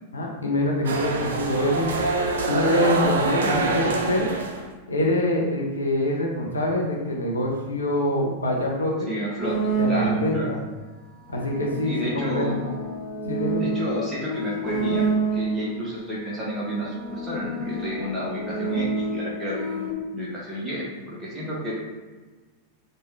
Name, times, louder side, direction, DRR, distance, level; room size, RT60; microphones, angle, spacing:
voice 1, 0.1-1.9 2.5-4.3 4.9-9.1 9.8-10.6 11.3-12.8 13.2-13.6, left 1 dB, 75° left, -1 dB, 0.5 m, -25 dB
sound 1, 0.8-4.7, right 3 dB, 65° right, 0.4 m, -25 dB
voice 2, 9.1-10.5 11.8-12.6 13.6-21.7, equal, 10° right, -7 dB, 0.7 m, -31 dB
sound 2, 9.4-10.5 11.3-15.7 16.5-19.9, right 3 dB, 40° left, 0.8 m, -28 dB
3.0 x 2.1 x 3.2 m, 1.3 s
figure-of-eight pair, 90°, 0 cm